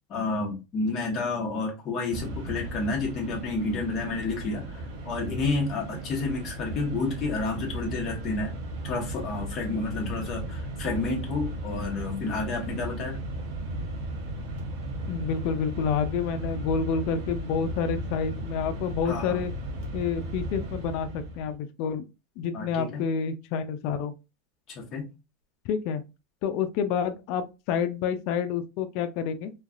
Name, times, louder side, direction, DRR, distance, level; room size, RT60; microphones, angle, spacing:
voice 1, 0.1-8.5 8.8-13.2 19.0-19.4 22.5-23.0 24.7-25.1, left 3 dB, 35° left, 1.1 m, -30 dB
Mechanisms, 2.1-21.5, right 1 dB, 60° right, 1.1 m, -35 dB
voice 2, 15.1-19.5 19.9-22.0 22.4-24.1 25.7-26.0 26.4-29.5, left 6 dB, 50° left, 0.4 m, -28 dB
3.2 x 2.3 x 2.4 m
supercardioid pair, 150°, 0 cm